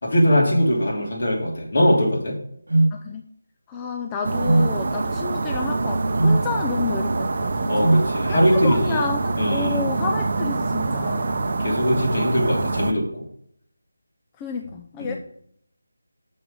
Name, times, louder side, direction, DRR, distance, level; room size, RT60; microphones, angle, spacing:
voice 1, 0.0-2.4 5.0-5.1 7.7-9.0 9.4-9.9 11.6-13.2 15.0-15.2, equal, 55° left, -2 dB, 3.1 m, -21 dB
sound 1, 2.7-3.0 4.4-4.8 6.2-6.5 7.8-8.1, right 2 dB, 80° right, 0.3 m, -18 dB
voice 2, 2.9-3.2 3.7-7.7 8.3-12.2 14.4-15.2, left 5 dB, 10° left, 3 dB, 0.4 m, -31 dB
sound 2, 4.2-12.9, right 3 dB, 45° right, 0.7 m, -25 dB
6.6 x 6.1 x 5.3 m, 0.69 s
figure-of-eight pair, 165°, 0 cm